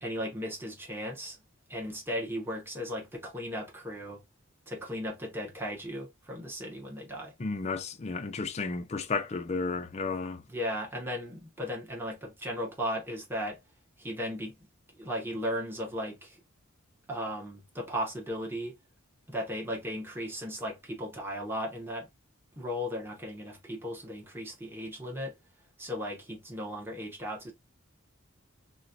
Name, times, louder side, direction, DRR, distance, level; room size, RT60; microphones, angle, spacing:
voice 1, 0.0-1.4 1.7-4.2 4.7-7.3 10.5-13.6 14.0-14.5 15.0-16.4 17.1-18.8 19.3-22.1 22.6-25.3 25.8-27.5, equal, 10° right, 0.8 m, -36 dB
voice 2, 7.4-10.4, left 4 dB, 30° left, 0.4 m, -33 dB
3.8 x 2.2 x 2.6 m
head